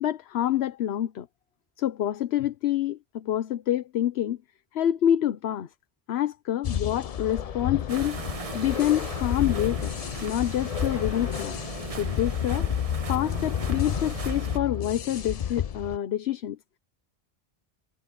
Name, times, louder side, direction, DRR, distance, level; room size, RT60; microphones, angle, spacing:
voice 1, 0.0-1.3 1.8-4.4 4.7-5.7 6.1-8.2 8.5-9.9 10.2-11.6 12.0-12.7 13.1-16.6, left 11 dB, 75° left, 1.0 m, -27 dB
sound 1, 6.6-16.0, left 9 dB, 50° left, 0.5 m, -31 dB
sound 2, 7.9-14.6, right 4 dB, 35° right, 1.2 m, -38 dB
omnidirectional pair, 1.1 m